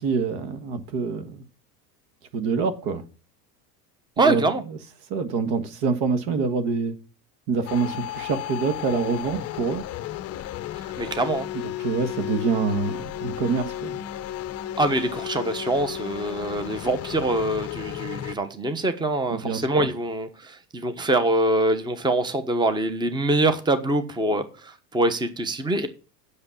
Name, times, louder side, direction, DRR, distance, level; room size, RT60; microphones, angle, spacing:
voice 1, 0.0-1.4 2.3-3.0 4.2-4.5 5.1-6.9 7.5-9.8 11.8-14.0 19.3-19.9, right 5 dB, 55° right, 1.7 m, -26 dB
voice 2, 4.2-4.6 10.8-11.5 14.8-25.9, right 2 dB, 10° right, 1.1 m, -24 dB
sound 1, 7.7-18.4, left 12 dB, 30° left, 0.7 m, -34 dB
7.8 x 6.7 x 7.2 m
hypercardioid pair, 95°, 49 cm